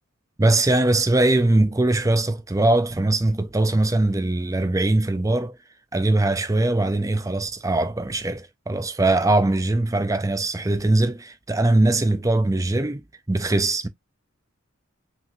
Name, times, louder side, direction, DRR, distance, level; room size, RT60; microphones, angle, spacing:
voice 1, 0.4-5.6 5.9-13.9, right 2 dB, 15° right, 0.5 m, -21 dB
5.8 x 2.8 x 2.6 m
head